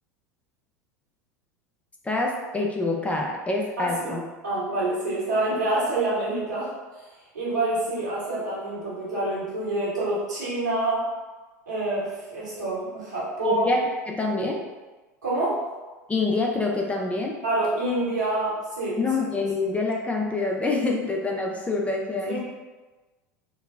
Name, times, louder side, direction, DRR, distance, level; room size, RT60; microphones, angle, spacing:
voice 1, 2.0-4.2 13.4-14.6 16.1-17.4 19.0-22.4, left 3 dB, 15° left, 0 dB, 0.5 m, -26 dB
voice 2, 3.8-6.7 7.3-11.1 11.7-13.6 15.2-15.6 17.4-19.0 22.3-22.4, right 2 dB, 85° right, -9 dB, 1.4 m, -27 dB
3.8 x 2.1 x 2.4 m, 1.2 s
figure-of-eight pair, 80°, 9 cm